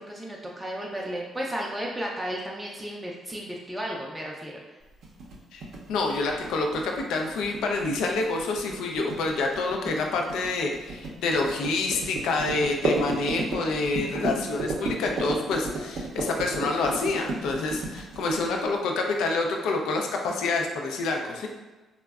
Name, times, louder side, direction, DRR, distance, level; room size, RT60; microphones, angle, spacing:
voice 1, 0.0-4.6 18.2-18.6, equal, 5° right, -3 dB, 0.4 m, -34 dB
sound 1, 5.0-18.8, right 2 dB, 70° right, 0.5 m, -33 dB
voice 2, 5.9-21.5, left 3 dB, 85° left, 2 dB, 0.3 m, -27 dB
3.4 x 2.1 x 2.3 m, 1.2 s
cardioid pair, 90°, 0 cm